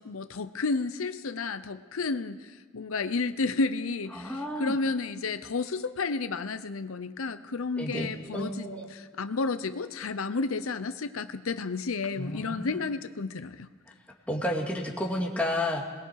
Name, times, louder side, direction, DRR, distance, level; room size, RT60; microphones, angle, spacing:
voice 1, 0.0-2.4 2.7-13.7, left 3 dB, 85° left, 11 dB, 0.7 m, -31 dB
voice 2, 4.1-4.7 7.8-8.9 12.2-12.8 14.3-15.8, left 1 dB, 5° left, -1 dB, 2.4 m, -31 dB
27.0 x 20.5 x 4.7 m, 1.5 s
head